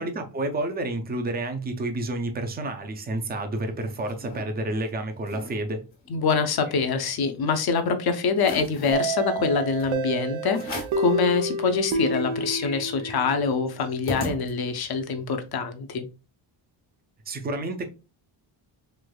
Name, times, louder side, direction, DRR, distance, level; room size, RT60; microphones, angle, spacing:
voice 1, 0.0-5.8 17.3-17.9, right 2 dB, 20° right, 0.4 m, -30 dB
sound 1, 3.6-4.4 4.9-5.0 5.2-5.5 5.9-7.5 7.9-8.0 8.4-9.1 9.8-9.9 10.5-11.1 11.6-11.7 11.9-14.9, left 1 dB, 90° left, 1.4 m, -38 dB
voice 2, 6.1-16.1, left 5 dB, 55° left, 0.6 m, -25 dB
sound 2, 8.9-13.6, right 2 dB, 75° right, 0.7 m, -29 dB
3.3 x 2.9 x 2.2 m
wide cardioid pair, 155°, 47 cm